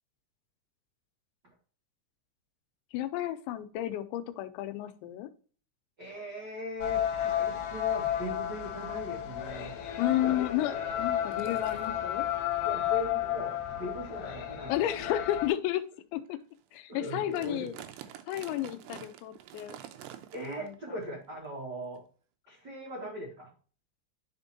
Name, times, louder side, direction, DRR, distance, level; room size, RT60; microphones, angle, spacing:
voice 1, 2.9-5.3 10.0-12.3 14.7-15.8 16.1-16.4 16.7-17.8 18.3-19.8 20.6-20.7, left 13 dB, 85° left, 11 dB, 3.0 m, -32 dB
voice 2, 6.0-9.7 10.2-10.5 12.6-15.1 16.9-17.7 20.3-22.0 22.5-23.5, equal, 65° right, -4 dB, 1.0 m, -40 dB
sound 1, 6.8-15.5, left 11 dB, 70° left, 2.7 m, -32 dB
sound 2, 7.5-7.6 8.0-8.2 8.8-8.9 9.2-9.5 10.6-10.7 11.3-11.9 12.7-12.8 13.4-13.6 14.2-14.3 15.0-15.2 15.7-15.9 16.3-16.4 16.5-16.8 17.1-20.8 21.0-21.2 22.0-22.1, right 11 dB, 90° right, 2.9 m, -48 dB
10.5 x 4.4 x 2.7 m, 0.40 s
omnidirectional pair, 5.1 m